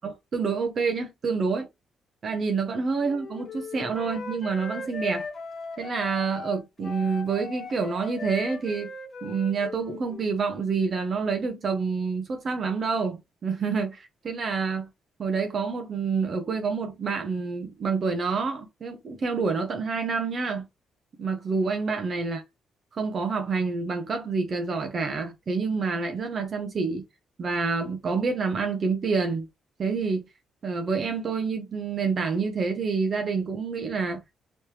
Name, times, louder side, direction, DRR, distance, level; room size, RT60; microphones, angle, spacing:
voice 1, 0.0-1.7 2.2-5.3 5.8-8.9 9.2-14.9 15.2-20.6 21.2-22.4 22.9-27.0 27.4-29.5 29.8-30.2 30.6-34.2, right 4 dB, 50° right, 0.8 m, -28 dB
Wind instrument woodwind instrument, 3.0-10.4, left 4 dB, 40° left, 1.5 m, -38 dB
3.2 x 3.2 x 2.9 m
cardioid pair, 90°, 0 cm